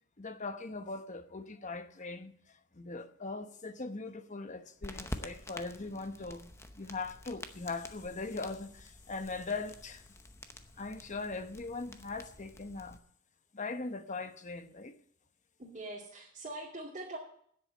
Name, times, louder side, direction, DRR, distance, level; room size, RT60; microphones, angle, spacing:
voice 1, 0.2-10.0 10.8-13.0 13.5-14.9, left 3 dB, 35° left, 1.0 m, -40 dB
sound 1, 4.8-13.0, left 1 dB, 15° left, 0.8 m, -48 dB
voice 2, 15.6-17.2, right 2 dB, 35° right, 2.4 m, -43 dB
10.0 x 8.1 x 9.0 m
head